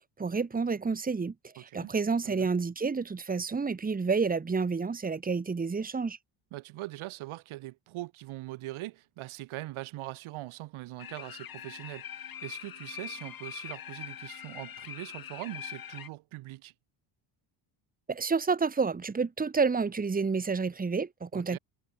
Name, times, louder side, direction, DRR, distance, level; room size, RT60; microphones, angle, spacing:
voice 1, 0.2-6.2 18.1-21.6, right 5 dB, 20° right, 1.9 m, -29 dB
voice 2, 1.6-1.9 2.2-2.5 6.5-16.7 21.3-21.6, right 17 dB, 85° right, 5.1 m, -42 dB
sound 1, 11.0-16.1, left 10 dB, 45° left, 3.4 m, -43 dB
cardioid pair, 130°, 48 cm